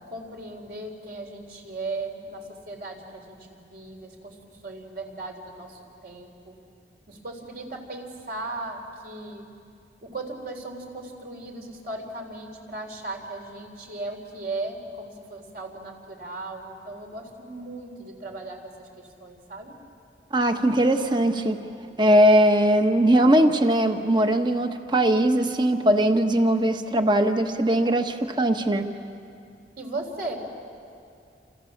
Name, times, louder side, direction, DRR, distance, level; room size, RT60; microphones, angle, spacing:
voice 1, 0.0-6.5 7.1-9.5 10.0-19.7 29.8-30.4, right 2 dB, 55° right, 2 dB, 4.0 m, -37 dB
voice 2, 20.3-21.6 22.0-28.9, right 1 dB, 25° right, 6 dB, 1.3 m, -20 dB
28.5 x 28.0 x 7.3 m, 2.5 s
head